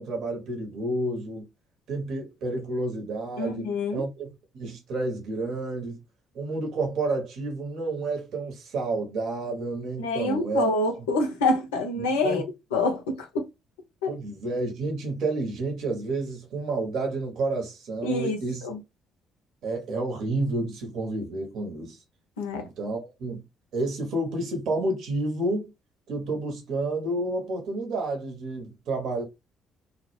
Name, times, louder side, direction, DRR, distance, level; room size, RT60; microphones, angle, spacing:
voice 1, 0.0-1.5 1.9-4.3 4.5-6.0 6.3-10.7 12.0-12.4 14.1-18.7 19.6-22.0 22.6-23.4 23.7-25.7 26.1-29.2, right 2 dB, 55° right, 0.7 m, -30 dB
voice 2, 3.4-4.0 10.0-12.4 12.7-13.3 14.0-14.1 18.0-18.4 18.6-18.8 22.4-22.6, left 2 dB, 75° left, 0.5 m, -26 dB
2.1 x 2.1 x 3.1 m
figure-of-eight pair, 45°, 0 cm